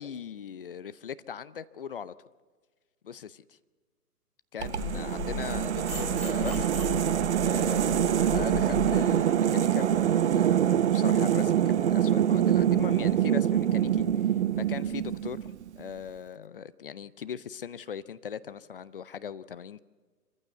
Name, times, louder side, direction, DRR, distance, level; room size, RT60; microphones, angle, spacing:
voice 1, 0.0-2.1 3.0-3.4 4.5-6.7 7.4-14.0 14.5-15.4 15.8-19.8, left 7 dB, 35° left, 16 dB, 0.6 m, -39 dB
sound 1, 4.6-8.9, left 5 dB, 5° left, 4.4 m, -36 dB
sound 2, 4.6-15.7, right 10 dB, 45° right, 0.8 m, -25 dB
25.5 x 15.0 x 8.3 m, 1.4 s
hypercardioid pair, 140°, 48 cm